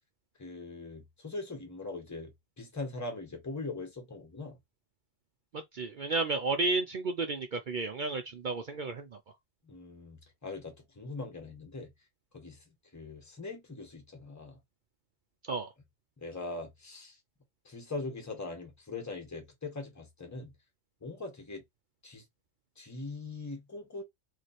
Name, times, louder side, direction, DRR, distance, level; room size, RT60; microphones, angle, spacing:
voice 1, 0.4-2.3 2.6-4.6 9.6-11.9 12.3-12.6 12.9-14.6 16.2-17.2 17.6-20.5 21.0-21.6 22.0-22.2 22.8-24.0, left 3 dB, 15° left, 1.0 m, -41 dB
voice 2, 5.7-9.1 15.5-15.7, right 3 dB, 55° right, 0.5 m, -32 dB
3.1 x 2.5 x 4.0 m
omnidirectional pair, 1.3 m